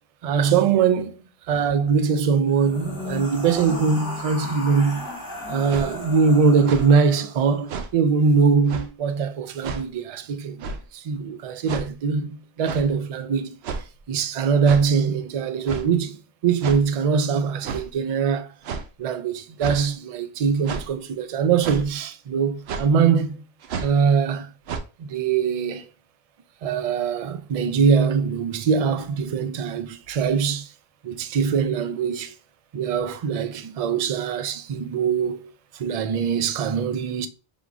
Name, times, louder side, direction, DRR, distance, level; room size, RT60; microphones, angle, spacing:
voice 1, 0.2-1.2 1.5-5.1 5.5-13.6 14.1-16.2 16.4-18.5 19.0-23.4 23.8-24.5 25.0-25.9 26.6-30.7 31.0-32.3 32.7-37.3, right 6 dB, 55° right, 0.4 m, -22 dB
sound 1, 2.5-7.7, left 2 dB, 20° left, 1.8 m, -35 dB
sound 2, 5.7-5.9 6.6-6.9 7.7-7.9 8.7-8.9 9.6-9.8 10.6-10.9 11.7-11.9 12.6-12.9 13.6-14.0 14.6-14.9 15.7-15.9 16.6-16.8 17.6-17.9 18.6-18.9 19.6-19.8 20.7-20.9 21.6-21.9 22.7-22.9 23.6-24.0 24.7-24.8, right 5 dB, 90° right, 0.8 m, -31 dB
4.7 x 3.5 x 2.5 m
omnidirectional pair, 1.0 m